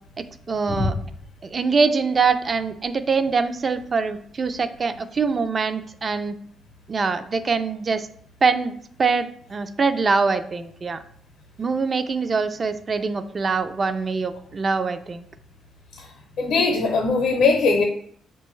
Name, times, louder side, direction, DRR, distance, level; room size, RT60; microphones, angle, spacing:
voice 1, 0.2-1.0 1.4-6.4 6.9-8.1 8.4-11.0 11.6-15.2, right 4 dB, 40° right, 10 dB, 0.3 m, -24 dB
voice 2, 16.4-17.8, left 4 dB, 75° left, 2 dB, 0.6 m, -20 dB
5.8 x 2.2 x 3.1 m, 0.64 s
cardioid pair, 90°, 0 cm